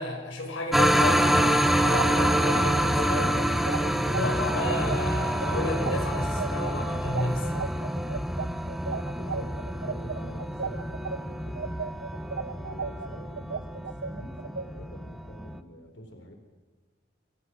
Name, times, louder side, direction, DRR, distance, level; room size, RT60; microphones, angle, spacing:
voice 1, 0.0-3.4 4.1-7.5, left 1 dB, 85° left, 3 dB, 5.9 m, -32 dB
sound 1, 0.7-15.6, equal, ahead, 1.0 m, -27 dB
sound 2, 1.8-11.2 11.6-14.7, right 5 dB, 60° right, 0.7 m, -34 dB
voice 2, 8.8-11.9 12.5-16.3, equal, 70° left, 4 dB, 4.3 m, -46 dB
26.5 x 23.5 x 6.3 m, 1.4 s
head